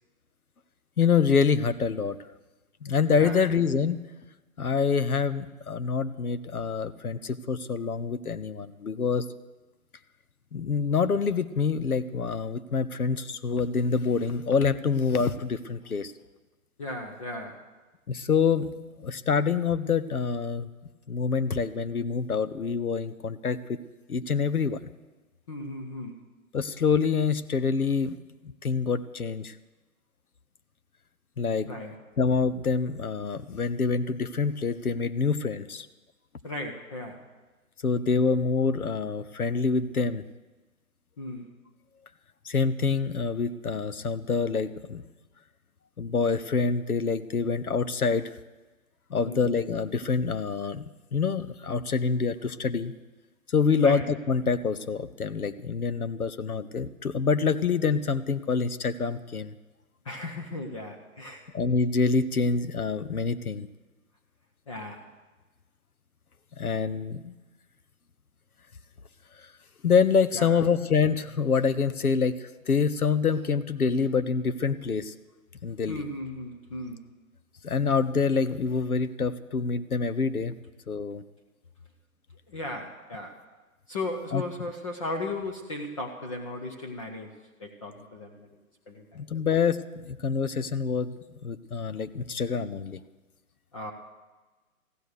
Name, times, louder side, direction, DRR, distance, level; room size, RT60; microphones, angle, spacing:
voice 1, 1.0-2.2 2.8-4.0 4.6-9.2 10.5-16.1 18.1-18.7 19.0-20.7 21.1-23.8 24.1-24.8 26.5-28.2 28.4-29.5 31.4-31.7 32.2-35.9 37.8-40.2 42.4-45.0 46.0-48.3 49.1-50.8 51.1-52.9 53.5-59.5 61.5-63.7 66.6-67.3 69.4-69.5 69.8-75.1 75.6-76.1 77.6-80.5 80.9-81.2 84.3-84.4 89.1-91.1 91.4-93.0, left 5 dB, 85° left, 12 dB, 1.0 m, -26 dB
voice 2, 16.8-17.7 25.5-26.2 31.7-32.0 36.4-37.3 41.2-41.5 49.2-49.5 53.8-54.0 60.0-61.5 64.7-65.1 70.3-70.6 75.9-77.0 82.5-83.4 83.9-88.6 88.9-89.2 93.7-93.9, left 2 dB, 25° left, 1 dB, 0.8 m, -36 dB
15.0 x 10.5 x 6.5 m, 1.2 s
figure-of-eight pair, 145°, 43 cm